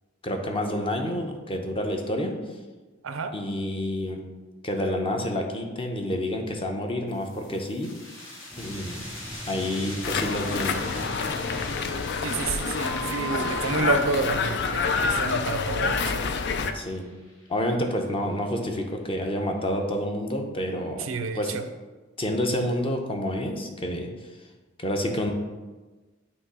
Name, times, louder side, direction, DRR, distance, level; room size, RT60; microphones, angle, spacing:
voice 1, 0.2-2.4 3.3-4.2 4.6-7.9 8.6-9.0 9.5-10.8 16.7-17.0 17.5-21.0 21.3-21.5 22.2-24.1 24.8-25.3, left 1 dB, 30° left, 3 dB, 0.7 m, -28 dB
sound 1, 7.1-18.4, left 1 dB, 75° left, 1.6 m, -44 dB
sound 2, 8.5-13.8, right 3 dB, 5° right, 0.3 m, -40 dB
sound 3, 10.0-16.7, left 5 dB, 60° left, 0.4 m, -27 dB
voice 2, 12.2-16.2 21.0-21.6, right 4 dB, 90° right, 9 dB, 0.5 m, -29 dB
8.2 x 3.0 x 4.9 m, 1.3 s
head